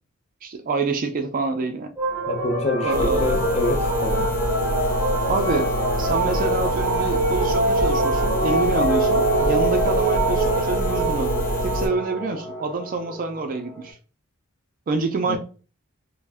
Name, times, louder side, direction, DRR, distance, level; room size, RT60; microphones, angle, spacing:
voice 1, 0.4-1.9 2.8-3.4 5.3-5.7 6.0-14.0 14.9-15.4, right 3 dB, 40° right, 0.4 m, -27 dB
sound 1, 2.0-13.8, right 1 dB, 10° right, 0.7 m, -24 dB
voice 2, 2.3-4.3 15.2-15.4, left 1 dB, 30° left, 0.6 m, -26 dB
sound 2, 2.9-11.9, equal, 80° left, 1.0 m, -27 dB
2.5 x 2.1 x 3.3 m
head